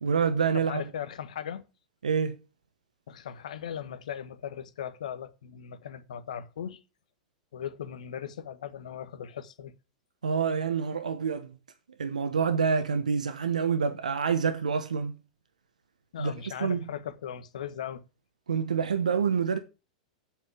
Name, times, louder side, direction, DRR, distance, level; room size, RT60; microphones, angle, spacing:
voice 1, 0.0-0.8 2.0-2.3 10.2-11.5 12.0-15.1 16.2-16.3 16.6-16.8 18.5-19.6, right 6 dB, 90° right, 1.0 m, -27 dB
voice 2, 0.5-1.6 3.1-6.8 7.5-9.7 16.1-18.0, left 9 dB, 75° left, 1.2 m, -38 dB
7.9 x 5.3 x 7.5 m
hypercardioid pair, 105°, 4 cm